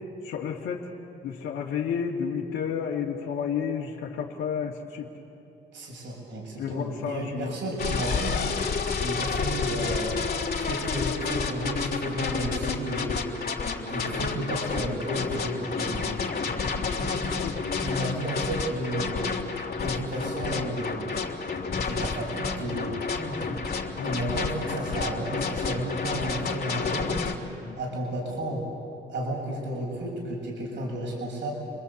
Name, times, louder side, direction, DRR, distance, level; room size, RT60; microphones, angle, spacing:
voice 1, 0.2-0.9 1.2-5.1 6.6-7.5 17.4-17.5 21.7-21.9 24.0-24.1 27.6-27.8, left 7 dB, 85° left, -4 dB, 2.3 m, -31 dB
voice 2, 5.7-8.4 9.0-10.1 10.6-13.2 13.9-17.2 17.8-19.3 19.8-21.3 21.8-23.6 24.0-27.2 27.8-28.6 29.1-31.5, right 1 dB, 70° right, -1 dB, 6.8 m, -32 dB
sound 1, 7.8-27.3, left 5 dB, 50° left, 3.3 m, -30 dB
29.5 x 22.5 x 8.5 m, 2.8 s
cardioid pair, 90°, 20 cm